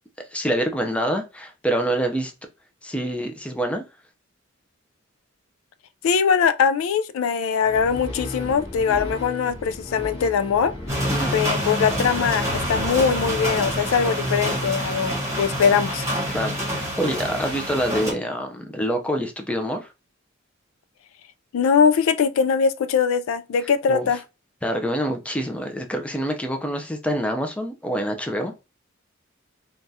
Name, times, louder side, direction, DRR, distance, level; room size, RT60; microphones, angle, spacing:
voice 1, 0.3-2.3 2.8-3.8 11.1-11.4 16.3-19.9 23.9-24.0 24.6-28.6, equal, 5° left, 0.4 m, -26 dB
voice 2, 6.0-10.7 11.3-16.0 21.5-24.2, left 6 dB, 85° left, 0.3 m, -21 dB
sound 1, 7.6-15.1, left 1 dB, 30° left, 1.4 m, -36 dB
sound 2, 10.9-18.1, equal, 15° right, 1.2 m, -27 dB
3.3 x 2.3 x 2.7 m
head